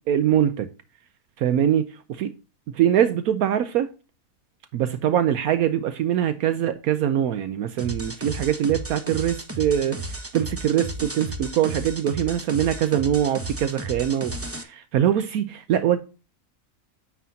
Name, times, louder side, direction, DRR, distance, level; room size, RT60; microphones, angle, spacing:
voice 1, 0.1-0.7 1.4-2.3 2.8-3.9 4.7-16.0, right 10 dB, 75° right, 1.1 m, -23 dB
sound 1, 7.8-14.6, right 2 dB, 15° right, 0.5 m, -34 dB
9.3 x 6.8 x 2.7 m
omnidirectional pair, 1.5 m